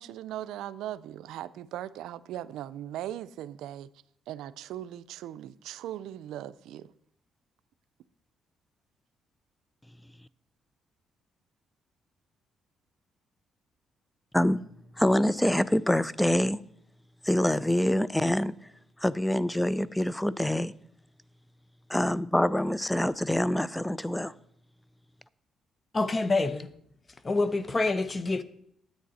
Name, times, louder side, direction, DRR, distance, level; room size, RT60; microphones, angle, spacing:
voice 1, 0.0-3.9 4.3-6.9, right 12 dB, 90° right, 0.4 m, -39 dB
voice 2, 15.0-16.6 17.2-18.5 19.0-20.7 21.9-24.3, left 1 dB, 5° left, 0.4 m, -25 dB
voice 3, 25.9-26.7 27.2-28.4, left 3 dB, 30° left, 0.8 m, -27 dB
10.5 x 8.9 x 4.1 m
cardioid pair, 90°, 0 cm